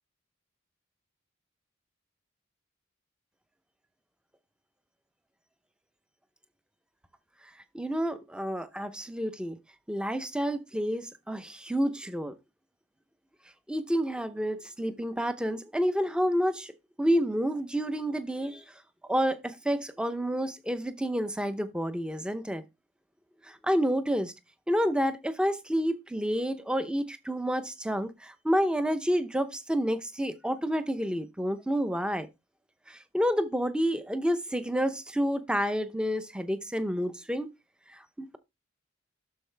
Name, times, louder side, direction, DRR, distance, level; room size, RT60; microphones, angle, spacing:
voice 1, 7.7-9.6 9.9-12.3 13.7-16.7 17.0-18.6 19.1-22.6 23.4-24.3 24.7-32.3 32.9-37.5 37.9-38.4, equal, 5° right, 0.7 m, -29 dB
12.0 x 4.7 x 3.4 m
head